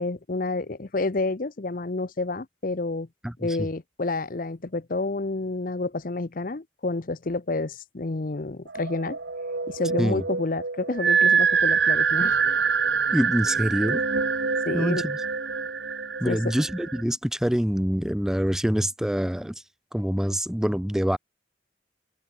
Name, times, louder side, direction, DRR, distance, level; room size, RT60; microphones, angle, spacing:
voice 1, 0.0-3.1 3.4-9.2 9.7-12.4 14.7-15.0 16.2-16.5, left 2 dB, 50° left, 0.8 m, -29 dB
voice 2, 3.2-3.7 10.0-10.2 13.1-14.0 14.7-15.2 16.2-19.6 19.9-21.2, equal, 5° right, 0.3 m, -25 dB
sound 1, 8.7-17.0, right 5 dB, 70° right, 1.4 m, -25 dB
open air
head